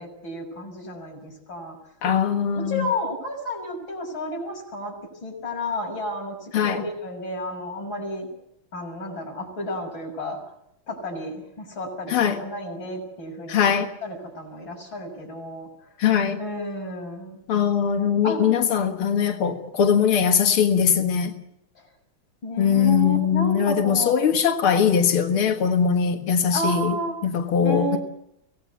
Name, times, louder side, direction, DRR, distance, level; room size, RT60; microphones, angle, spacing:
voice 1, 0.0-1.8 2.5-4.9 5.2-8.3 8.7-10.4 10.9-13.7 14.0-15.7 16.4-17.4 18.2-18.6 22.4-24.2 26.5-27.2 27.6-28.0, left 1 dB, 65° left, 7.3 m, -31 dB
voice 2, 2.0-2.9 6.5-6.8 12.1-12.4 13.5-13.9 16.0-16.4 17.5-21.3 22.6-27.0 27.2-28.0, left 7 dB, 90° left, 2.4 m, -21 dB
25.0 x 18.5 x 8.4 m
omnidirectional pair, 2.3 m